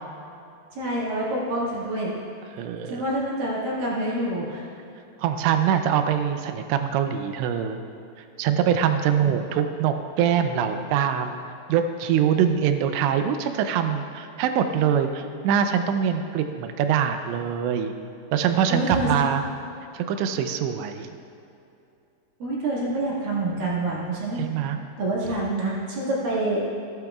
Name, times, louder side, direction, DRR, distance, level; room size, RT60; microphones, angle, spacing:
voice 1, 0.7-2.1 2.9-4.7 9.3-9.4 18.7-19.3 22.4-24.7 25.0-26.6, right 1 dB, 60° right, -6 dB, 3.3 m, -27 dB
voice 2, 2.6-3.0 5.2-7.8 8.4-11.4 11.7-17.9 18.3-19.4 19.9-21.1 24.4-24.8, right 8 dB, 85° right, 7 dB, 2.8 m, -23 dB
14.5 x 11.5 x 2.4 m, 2.7 s
omnidirectional pair, 5.1 m